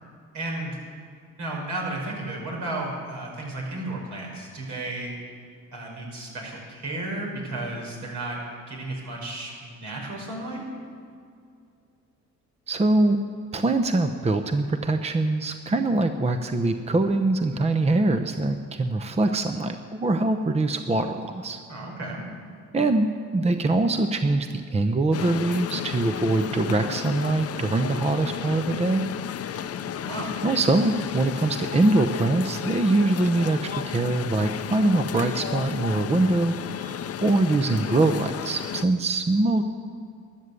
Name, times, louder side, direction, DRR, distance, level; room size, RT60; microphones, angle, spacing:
voice 1, 0.3-0.8 1.4-5.1 5.7-8.4 8.7-10.6 21.7-22.2 30.0-30.3, right 2 dB, 70° right, -1 dB, 4.9 m, -33 dB
voice 2, 12.7-13.2 13.5-21.6 22.7-29.0 29.5-29.7 30.4-39.6, right 2 dB, 20° right, 7 dB, 0.8 m, -23 dB
sound 1, 25.1-38.8, left 9 dB, 50° left, 0.7 m, -33 dB
13.0 x 11.0 x 8.3 m, 2.4 s
cardioid pair, 90°, 30 cm